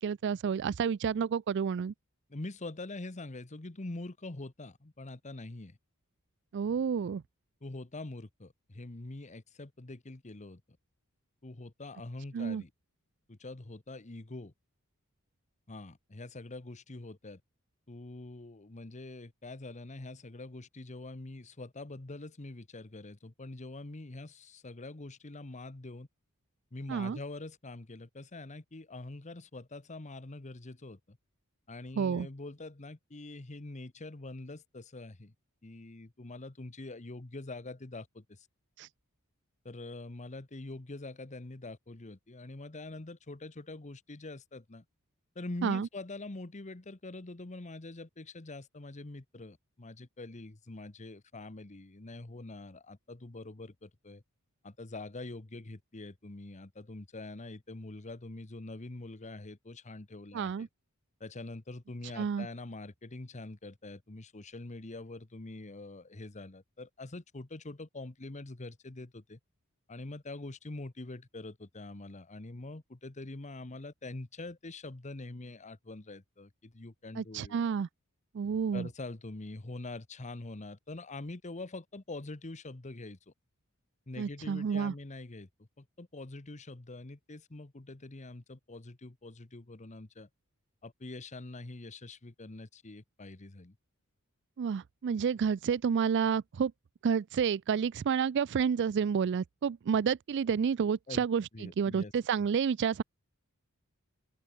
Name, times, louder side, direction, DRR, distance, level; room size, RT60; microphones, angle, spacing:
voice 1, 0.0-1.9 6.5-7.2 12.3-12.6 26.9-27.2 32.0-32.3 38.8-38.9 45.6-45.9 60.3-60.7 62.2-62.5 77.2-77.9 78.3-78.9 84.2-84.9 94.6-96.7 97.0-103.0, right 6 dB, 55° right, 0.3 m, -30 dB
voice 2, 2.3-5.8 7.6-10.6 11.4-12.7 13.3-14.5 15.7-17.4 17.9-26.1 26.7-31.2 31.7-35.3 35.6-38.5 39.6-44.8 45.3-54.2 54.6-60.7 61.2-69.4 69.9-77.6 78.7-83.3 84.1-90.3 90.8-93.8 101.1-101.2 101.5-102.1 102.4-102.5, left 2 dB, 30° left, 1.1 m, -44 dB
open air
head